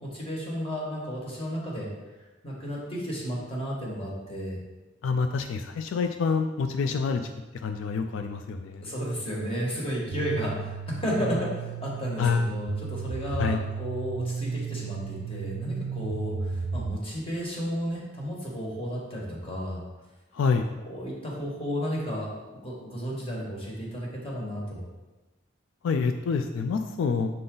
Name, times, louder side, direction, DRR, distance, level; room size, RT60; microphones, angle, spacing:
voice 1, 0.0-1.9 2.4-4.6 8.8-19.8 20.8-24.8, equal, 30° left, -4 dB, 1.5 m, -33 dB
voice 2, 5.0-7.3 7.6-8.9 12.2-12.5 13.4-13.6 20.3-20.7 25.8-27.3, left 5 dB, 80° left, 7 dB, 0.3 m, -27 dB
sound 1, 10.1-17.0, right 5 dB, 70° right, 0.3 m, -34 dB
6.6 x 3.9 x 3.8 m, 1.1 s
head